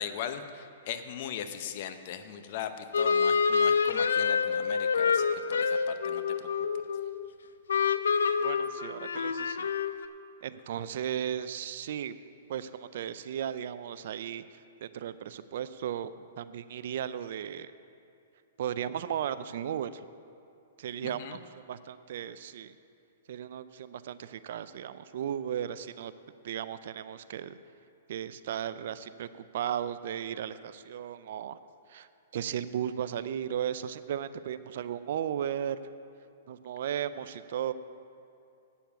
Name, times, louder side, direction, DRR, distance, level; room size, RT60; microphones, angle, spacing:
voice 1, 0.0-6.4 21.0-21.4, left 9 dB, 50° left, 9 dB, 0.7 m, -39 dB
sound 1, 2.9-7.3 7.7-10.1, left 6 dB, 90° left, 0.5 m, -27 dB
voice 2, 8.4-9.7 10.4-12.1 12.5-14.4 14.8-16.1 16.4-17.7 18.6-20.1 20.8-22.7 23.3-26.1 26.4-27.6 28.1-31.6 31.9-32.1 32.3-35.8 36.5-37.7, right 9 dB, 60° right, 14 dB, 0.4 m, -35 dB
9.1 x 7.1 x 8.2 m, 2.6 s
hypercardioid pair, 140°, 0 cm